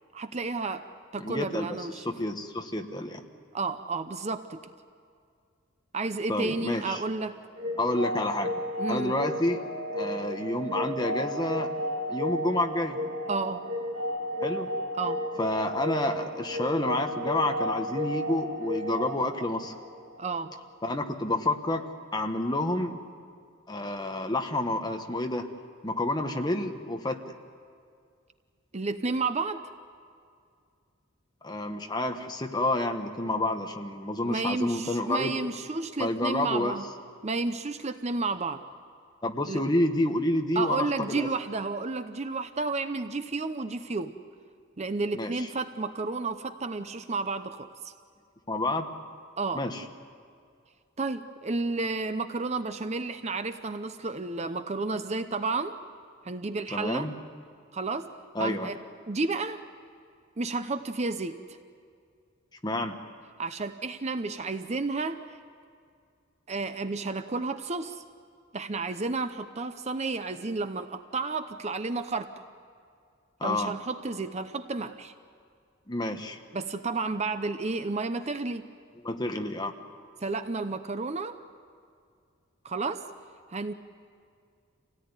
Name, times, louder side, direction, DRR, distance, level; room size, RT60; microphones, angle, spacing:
voice 1, 0.1-0.8 1.1-2.1 3.5-4.7 5.9-7.4 8.8-9.1 13.3-13.6 15.0-15.2 20.2-20.5 28.7-29.6 34.2-36.8 37.2-38.6 39.5-39.6 40.6-44.2 44.8-47.9 49.4-49.6 51.0-55.8 56.2-57.1 57.7-58.1 58.4-58.8 59.1-59.6 60.4-61.6 63.4-65.2 66.5-68.0 68.5-72.3 73.4-75.1 76.5-78.7 80.2-81.4 82.6-83.0 83.5-83.7, right 3 dB, 30° right, 9 dB, 0.7 m, -31 dB
voice 2, 1.2-3.2 6.3-7.0 7.8-8.5 8.9-9.6 9.9-11.7 12.1-13.0 14.4-14.7 15.4-19.7 20.8-21.8 22.1-23.0 23.7-25.5 25.8-27.2 31.4-35.4 36.0-36.7 39.2-41.3 45.1-45.5 48.5-48.9 49.5-49.8 56.7-57.1 58.3-58.7 62.6-63.0 73.4-73.7 75.9-76.4 79.0-79.7, left 1 dB, 20° left, 5 dB, 1.3 m, -29 dB
sound 1, 7.6-20.3, equal, 60° right, 2.7 m, -33 dB
26.5 x 17.5 x 9.7 m, 2.2 s
head